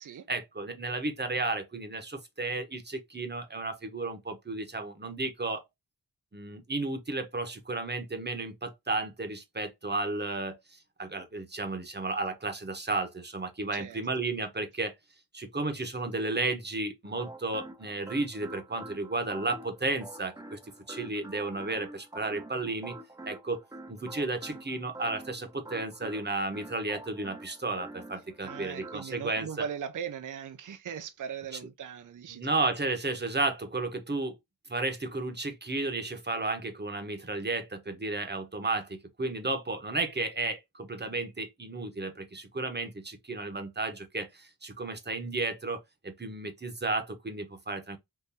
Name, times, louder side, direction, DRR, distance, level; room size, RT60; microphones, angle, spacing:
voice 1, 0.3-5.6 6.3-14.9 15.3-20.6 20.9-23.0 23.2-23.6 23.9-29.6 32.3-34.4 34.7-48.0, right 2 dB, 25° right, 0.9 m, -33 dB
voice 2, 13.7-14.0 28.4-32.6, right 7 dB, 55° right, 0.5 m, -39 dB
sound 1, 17.0-29.4, right 2 dB, 10° right, 0.7 m, -47 dB
3.8 x 2.6 x 2.7 m
wide cardioid pair, 75°, 38 cm